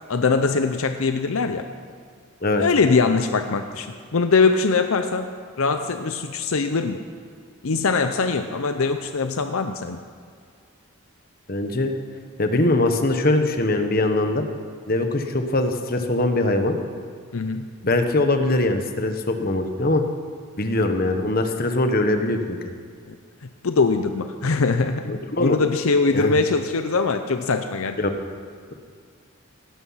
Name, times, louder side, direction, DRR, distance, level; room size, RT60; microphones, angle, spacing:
voice 1, 0.1-1.6 2.6-3.9 4.1-5.3 5.6-7.0 7.6-10.0 17.3-17.7 23.6-28.0, left 4 dB, 75° left, 8 dB, 0.6 m, -22 dB
voice 2, 11.5-11.9 12.4-14.4 14.9-16.8 17.8-20.0 20.6-22.6 25.0-25.6 26.1-26.4 28.0-28.1, left 2 dB, 40° left, 6 dB, 1.1 m, -22 dB
17.5 x 11.5 x 5.7 m, 2.1 s
head